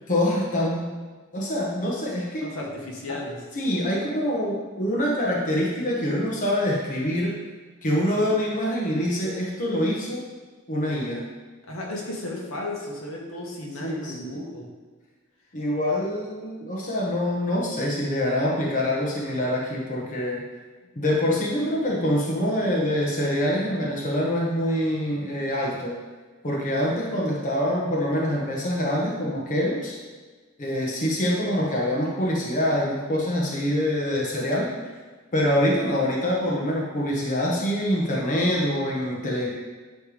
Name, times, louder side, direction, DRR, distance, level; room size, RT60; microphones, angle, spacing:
voice 1, 0.1-0.9 1.3-2.5 3.1-3.2 3.5-7.4 7.8-10.2 10.7-11.2 13.8-14.4 15.5-20.4 21.0-26.0 26.4-30.0 30.6-34.7 35.3-39.5, left 1 dB, 40° left, -4 dB, 1.2 m, -25 dB
voice 2, 2.4-3.4 11.7-14.7, left 1 dB, 70° left, -2 dB, 1.6 m, -34 dB
9.9 x 3.5 x 5.0 m, 1.4 s
head